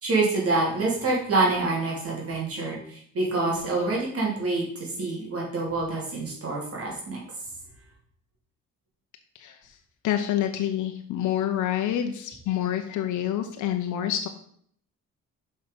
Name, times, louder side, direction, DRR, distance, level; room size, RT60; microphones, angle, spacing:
voice 1, 0.0-7.2, right 3 dB, 50° right, -3 dB, 3.0 m, -26 dB
voice 2, 10.0-14.3, left 11 dB, 75° left, 6 dB, 0.8 m, -27 dB
6.0 x 5.4 x 5.2 m, 0.63 s
cardioid pair, 90°, 30 cm